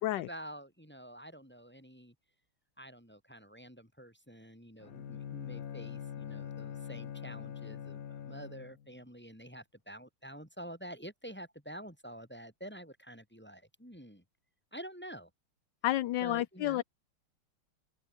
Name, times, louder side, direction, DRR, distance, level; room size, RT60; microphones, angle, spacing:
voice 1, 0.0-2.1 2.8-14.2 14.7-15.3 16.2-16.8, equal, 5° left, 5.0 m, -48 dB
Bowed string instrument, 4.8-8.9, left 8 dB, 50° left, 1.4 m, -43 dB
voice 2, 15.8-16.8, left 15 dB, 70° left, 1.3 m, -30 dB
open air
omnidirectional pair, 2.3 m